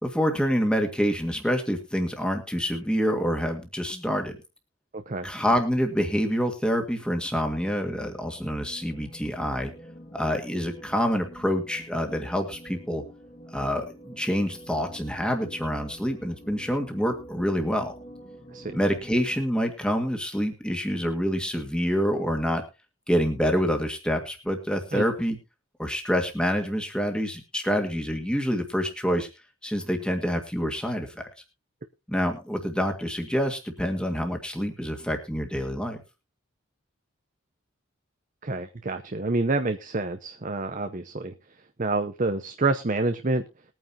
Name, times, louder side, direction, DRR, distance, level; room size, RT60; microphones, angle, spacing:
voice 1, 0.0-4.3 5.2-9.7 10.1-13.0 13.5-17.9 18.7-22.6 23.1-25.4 25.8-29.3 29.6-31.2 32.1-36.0, equal, 5° left, 4 dB, 1.9 m, -27 dB
voice 2, 4.9-5.3 18.5-18.8 24.9-25.0 38.4-41.3 41.8-43.4, right 3 dB, 35° right, 8 dB, 0.7 m, -28 dB
sound 1, 6.9-19.4, equal, 30° left, 2.0 m, -47 dB
21.0 x 9.2 x 2.8 m, 0.29 s
head